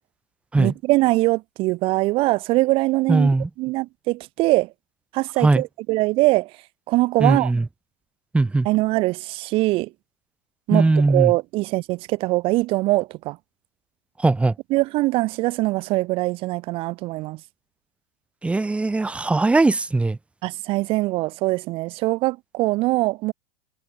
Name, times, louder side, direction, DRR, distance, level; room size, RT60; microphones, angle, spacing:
voice 1, 0.6-3.3 3.6-4.7 5.1-6.5 6.9-7.5 8.6-9.9 10.7-13.4 14.7-17.4 20.4-23.3, right 20 dB, 50° right, 0.5 m, -22 dB
voice 2, 3.1-3.5 5.4-5.6 7.2-7.6 8.3-8.7 10.7-11.3 14.2-14.5 18.4-20.2, right 3 dB, 10° right, 1.5 m, -19 dB
supercardioid pair, 110°, 12 cm